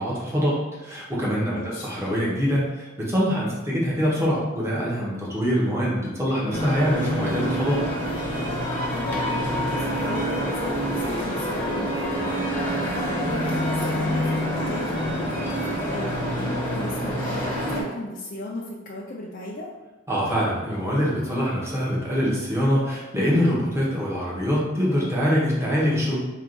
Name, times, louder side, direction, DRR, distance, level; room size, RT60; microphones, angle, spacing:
voice 1, 0.0-7.8 20.1-26.1, equal, 15° right, -6 dB, 1.0 m, -24 dB
voice 2, 1.5-1.9 8.8-9.4 9.8-19.7, left 1 dB, 50° left, -4 dB, 0.5 m, -36 dB
sound 1, 6.5-17.8, equal, 10° left, 0.9 m, -26 dB
4.6 x 2.4 x 3.8 m, 1.1 s
head